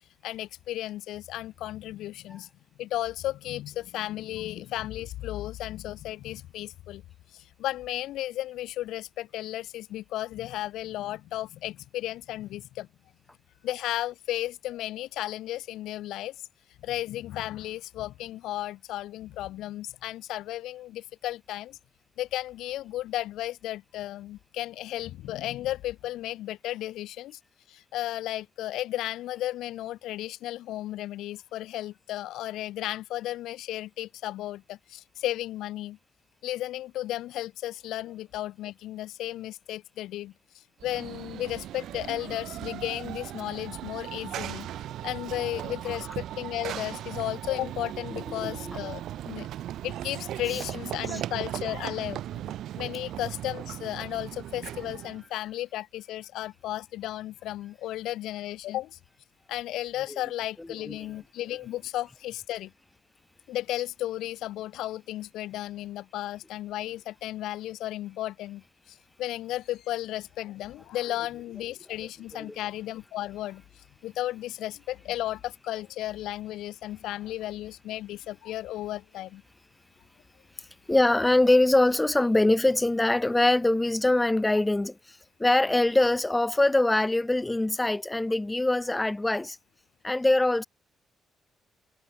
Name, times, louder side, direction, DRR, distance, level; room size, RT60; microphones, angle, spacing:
voice 1, 0.2-2.5 2.8-7.0 7.3-12.9 13.6-16.3 16.8-21.8 22.2-27.4 27.7-36.0 36.4-40.3 40.8-44.7 45.0-49.5 49.8-52.2 52.8-59.0 59.5-62.7 63.5-73.6 74.0-79.4 84.5-84.6, left 14 dB, 85° left, 0.9 m, -34 dB
Run / Train, 40.8-55.2, right 12 dB, 80° right, 1.1 m, -37 dB
voice 2, 48.4-48.8 51.1-51.2 60.1-60.2 60.9-61.0 72.5-72.6 80.6-89.6 90.0-90.7, left 2 dB, 15° left, 0.3 m, -23 dB
cardioid pair, 90°, 0 cm